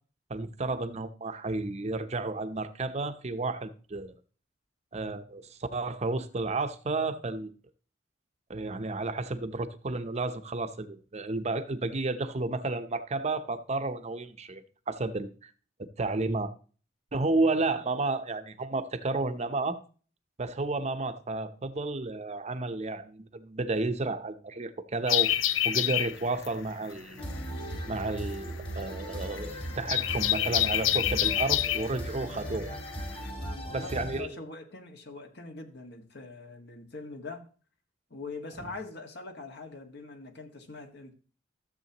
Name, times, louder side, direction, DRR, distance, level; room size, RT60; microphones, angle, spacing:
voice 1, 0.3-4.1 4.9-7.5 8.5-14.6 14.9-15.5 16.0-16.5 17.1-19.8 20.4-25.3 25.6-27.3 27.9-32.8 33.7-34.4, right 3 dB, 35° right, 0.7 m, -32 dB
sound 1, 25.1-33.3, left 12 dB, 85° left, 0.5 m, -28 dB
sound 2, 27.2-34.2, equal, 30° left, 2.2 m, -38 dB
voice 2, 32.2-32.6 33.3-37.4 38.1-41.1, left 3 dB, 60° left, 1.7 m, -43 dB
13.5 x 7.4 x 2.9 m
head